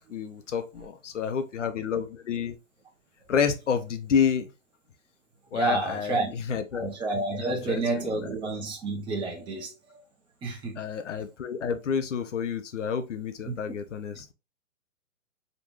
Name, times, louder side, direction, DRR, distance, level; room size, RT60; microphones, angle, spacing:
voice 1, 0.0-2.6 3.3-4.5 5.5-6.9 7.4-8.3 10.8-14.3, left 7 dB, 60° left, 1.2 m, -29 dB
voice 2, 5.5-6.3 6.7-10.0 10.4-10.8 13.5-13.6, right 3 dB, 10° right, 0.9 m, -30 dB
5.3 x 3.4 x 2.6 m
figure-of-eight pair, 125°, 40 cm